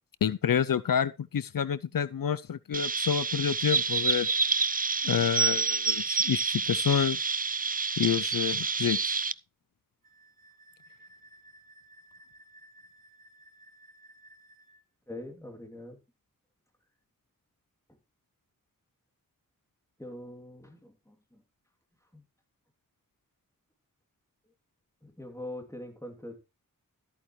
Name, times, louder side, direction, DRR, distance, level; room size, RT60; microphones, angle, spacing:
voice 1, 0.2-4.3 5.0-7.2 8.0-9.2, left 8 dB, 75° left, 0.5 m, -28 dB
Chirp tweet, 2.7-9.3, right 4 dB, 25° right, 0.4 m, -28 dB
Wind instrument woodwind instrument, 10.0-14.8, right 1 dB, 80° right, 3.7 m, -56 dB
voice 2, 15.1-16.0 17.9-18.0 20.0-21.4 22.1-22.2 25.0-26.4, left 1 dB, 10° left, 2.8 m, -43 dB
13.5 x 8.5 x 3.2 m
wide cardioid pair, 65°, 34 cm